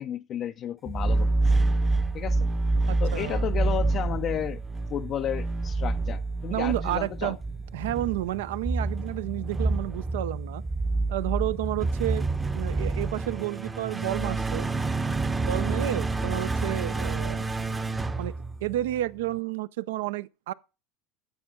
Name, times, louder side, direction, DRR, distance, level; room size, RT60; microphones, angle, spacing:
voice 1, 0.0-1.6 2.1-2.5 3.0-4.6 4.9-7.3, left 10 dB, 45° left, 0.4 m, -32 dB
sound 1, 0.9-19.0, right 3 dB, 15° right, 0.6 m, -28 dB
voice 2, 2.9-3.4 6.5-7.4 7.7-10.6 11.1-12.3 12.5-14.7 15.4-17.5 18.2-18.3 18.6-20.5, right 15 dB, 80° right, 0.4 m, -31 dB
9.8 x 6.8 x 3.6 m
supercardioid pair, 95°, 0 cm